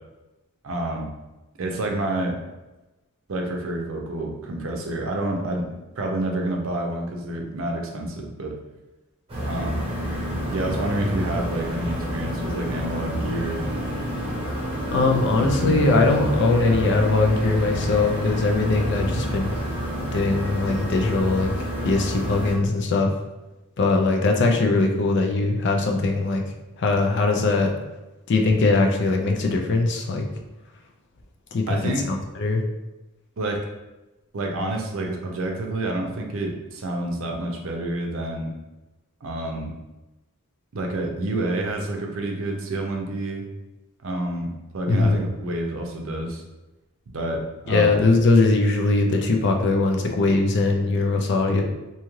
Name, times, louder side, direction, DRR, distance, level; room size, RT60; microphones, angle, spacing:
voice 1, 0.6-1.1 1.6-2.4 3.3-8.6 9.5-9.8 10.5-13.6 15.4-16.3 31.7-32.1 33.4-33.7 34.3-38.5 39.2-39.7 40.7-43.5 44.0-46.4 47.1-48.0, right 1 dB, 65° right, 1 dB, 0.5 m, -28 dB
sound 1, 9.3-22.5, equal, 30° right, 0.9 m, -29 dB
voice 2, 14.9-19.5 20.1-21.5 21.8-23.1 23.8-26.4 26.8-27.7 28.3-30.3 31.5-31.8 32.4-32.6 44.9-45.2 47.7-51.6, left 3 dB, 55° left, 2 dB, 0.4 m, -21 dB
2.7 x 2.4 x 3.0 m, 1.1 s
head